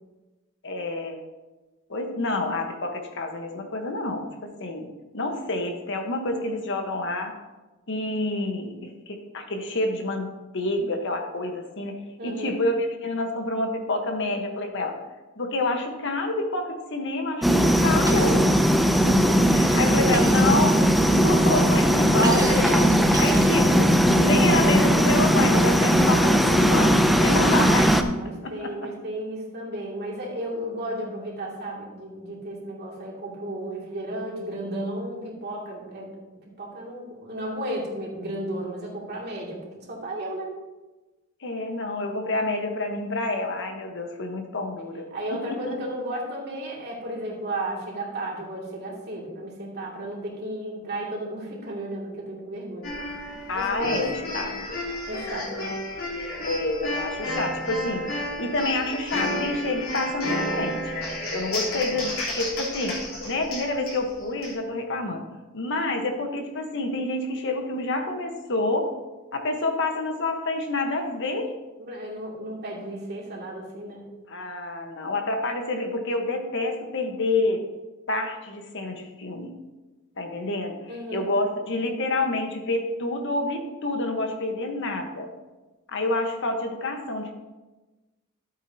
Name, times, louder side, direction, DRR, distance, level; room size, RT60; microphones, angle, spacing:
voice 1, 0.6-1.2 1.9-7.3 7.9-15.0 15.4-18.5 19.1-20.8 21.1-27.9 28.2-28.7 41.4-45.1 45.5-45.8 53.5-54.8 56.4-58.0 58.4-61.0 61.3-63.0 63.2-65.2 65.5-68.9 69.3-71.5 74.3-77.6 78.1-79.5 80.2-80.7 81.1-85.3 85.9-87.3, left 2 dB, 60° left, 4 dB, 1.2 m, -28 dB
voice 2, 12.2-12.6 19.6-20.9 27.4-36.1 36.6-40.5 45.1-52.9 53.5-54.5 55.1-55.7 61.7-61.8 71.8-74.1 80.9-81.3, right 1 dB, 50° right, -3 dB, 2.6 m, -34 dB
sound 1, 17.4-28.0, equal, ahead, 0.5 m, -19 dB
Shatter, 18.1-18.5 20.1-20.6 22.2-23.9, right 3 dB, 20° right, 1.3 m, -34 dB
sound 2, 52.8-64.5, left 1 dB, 85° left, 3.6 m, -32 dB
12.5 x 8.3 x 2.8 m, 1.1 s
head